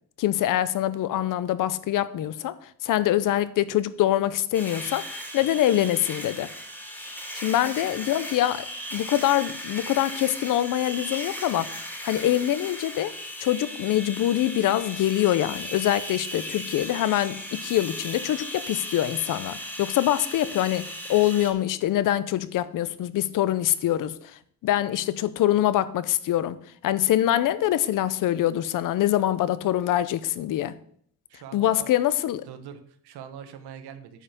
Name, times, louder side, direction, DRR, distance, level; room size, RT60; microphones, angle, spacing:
voice 1, 0.2-6.5 7.3-26.6 26.8-30.8 31.5-32.4, left 12 dB, 55° left, 0.7 m, -24 dB
sound 1, 4.5-21.5, equal, 5° left, 2.0 m, -37 dB
voice 2, 31.3-32.0 32.5-34.2, right 8 dB, 90° right, 1.4 m, -43 dB
9.5 x 5.6 x 6.7 m
cardioid pair, 175°, 38 cm